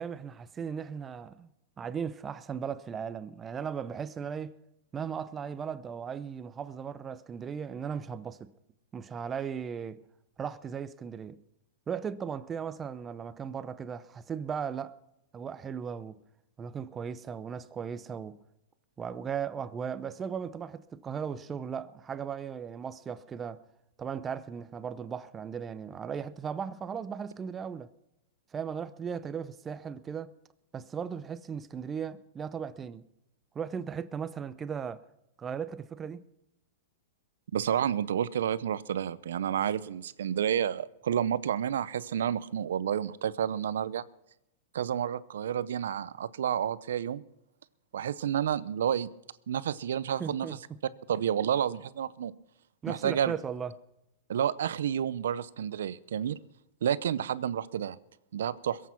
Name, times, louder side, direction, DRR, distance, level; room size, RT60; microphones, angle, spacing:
voice 1, 0.0-1.5 1.8-4.6 4.9-8.5 8.9-10.0 10.4-11.4 11.9-15.0 15.3-16.2 16.6-18.4 19.0-23.6 24.0-27.9 28.5-30.3 30.7-33.1 33.5-35.0 35.4-36.2 50.2-50.6 52.8-53.8, right 7 dB, 20° right, 0.6 m, -37 dB
voice 2, 37.5-44.0 44.7-47.2 47.9-49.1 49.5-50.5 51.1-52.3 52.9-53.3 54.3-56.4 56.8-58.0 58.3-58.8, right 9 dB, 80° right, 0.7 m, -30 dB
21.5 x 8.4 x 5.8 m
hypercardioid pair, 135°, 0 cm